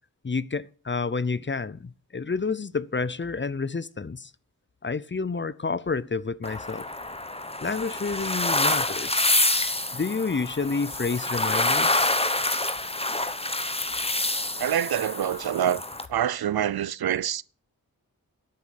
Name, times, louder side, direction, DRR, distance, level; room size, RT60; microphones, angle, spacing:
voice 1, 0.2-4.3 4.8-6.8 7.6-9.3 9.9-12.1, left 4 dB, 30° left, 0.6 m, -29 dB
sound 1, 6.4-16.1, left 2 dB, 15° left, 1.1 m, -27 dB
voice 2, 14.6-15.8 16.1-17.4, right 10 dB, 80° right, 0.5 m, -26 dB
10.5 x 9.6 x 6.6 m
wide cardioid pair, 60°, 36 cm